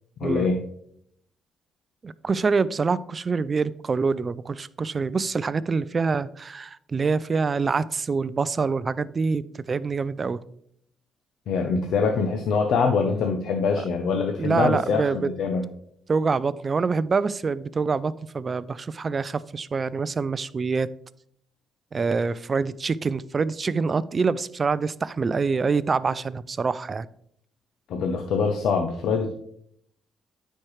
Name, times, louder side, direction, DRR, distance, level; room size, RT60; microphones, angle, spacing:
voice 1, 0.2-0.6 11.5-15.6 27.9-29.3, left 5 dB, 75° left, 3 dB, 0.7 m, -24 dB
voice 2, 2.0-10.4 13.7-13.8 14.4-15.3 16.1-20.9 21.9-27.1, right 4 dB, 35° right, 18 dB, 0.3 m, -25 dB
9.5 x 4.4 x 3.2 m, 0.69 s
cardioid pair, 90°, 0 cm